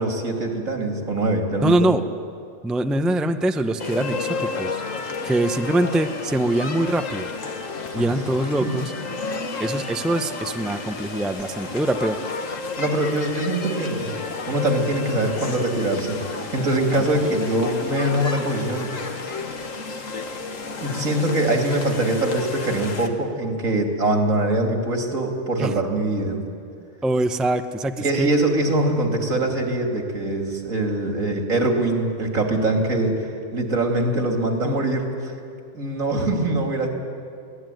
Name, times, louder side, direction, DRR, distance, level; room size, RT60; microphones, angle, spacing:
voice 1, 0.0-1.7 7.9-8.3 8.6-8.7 12.8-14.1 14.4-16.2 16.5-18.9 20.8-26.4 28.0-35.3 35.7-36.9, right 1 dB, 80° right, 2 dB, 3.2 m, -23 dB
voice 2, 1.6-2.0 2.6-4.8 5.2-7.3 7.9-8.9 9.6-12.2 17.2-17.4 25.6-25.7 27.0-28.3, right 1 dB, ahead, 7 dB, 0.6 m, -23 dB
sound 1, 3.8-23.1, left 4 dB, 75° left, 1.9 m, -31 dB
23.5 x 18.0 x 9.3 m, 2.4 s
omnidirectional pair, 1.4 m